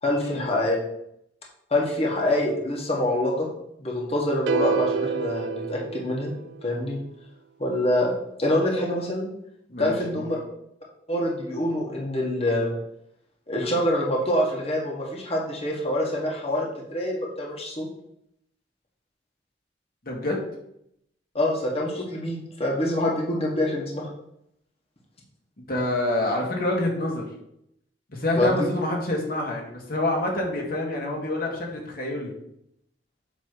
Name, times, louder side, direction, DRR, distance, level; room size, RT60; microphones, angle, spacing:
voice 1, 0.0-0.8 1.7-3.5 3.8-6.3 6.6-7.0 7.6-9.3 9.8-10.4 11.1-12.7 13.5-17.9 21.3-24.1 28.3-28.7, left 1 dB, 35° left, -2 dB, 1.7 m, -25 dB
sound 1, 4.5-6.8, right 6 dB, 75° right, 0.3 m, -28 dB
voice 2, 9.7-10.3 20.1-20.4 25.6-27.3 28.1-32.3, left 1 dB, 55° left, 0 dB, 1.9 m, -27 dB
8.2 x 3.3 x 6.2 m, 0.77 s
head